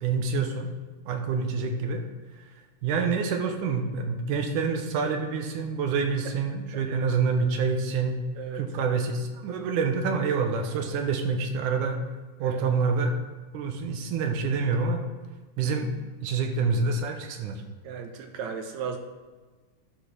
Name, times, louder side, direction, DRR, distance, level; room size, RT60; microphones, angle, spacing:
voice 1, 0.0-0.7 1.1-2.0 2.8-8.2 8.6-12.0 12.4-13.1 13.5-15.0 15.6-15.9 16.2-17.6, right 5 dB, 90° right, 4 dB, 2.5 m, -27 dB
voice 2, 6.2-6.8 8.4-8.7 12.4-12.6 17.8-19.0, right 6 dB, 75° right, 5 dB, 2.1 m, -36 dB
11.5 x 5.2 x 5.9 m, 1.3 s
omnidirectional pair, 3.4 m